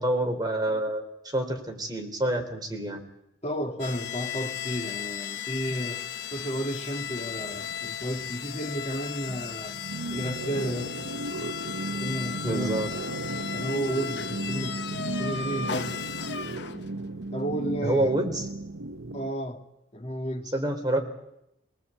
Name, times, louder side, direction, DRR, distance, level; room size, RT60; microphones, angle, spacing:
voice 1, 0.0-3.0 12.4-12.9 17.8-18.4 20.5-21.0, right 1 dB, 20° right, 3.5 m, -27 dB
voice 2, 3.4-6.1 6.3-9.8 10.1-11.0 12.0-12.9 13.4-16.0 17.3-18.2 19.1-19.6 19.9-20.5, right 1 dB, 30° left, 2.4 m, -32 dB
sound 1, 3.8-17.0, left 8 dB, 60° left, 1.0 m, -36 dB
sound 2, 7.0-19.3, right 2 dB, 85° right, 0.9 m, -36 dB
25.5 x 20.0 x 8.3 m
head